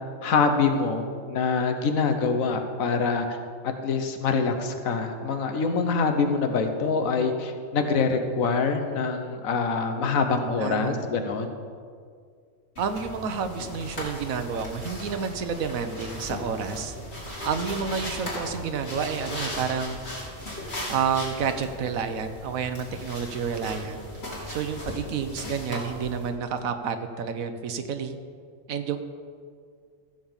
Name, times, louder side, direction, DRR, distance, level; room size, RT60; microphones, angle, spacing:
voice 1, 0.2-3.4 3.6-11.5, left 4 dB, 90° left, 6 dB, 1.4 m, -25 dB
voice 2, 10.4-11.0 12.8-16.9 17.4-20.1 20.9-24.0 24.5-28.2 28.7-29.0, right 6 dB, 90° right, 8 dB, 1.2 m, -30 dB
sound 1, 12.8-26.3, left 1 dB, 50° left, 3.0 m, -37 dB
14.5 x 5.3 x 7.3 m, 2.1 s
omnidirectional pair, 1.4 m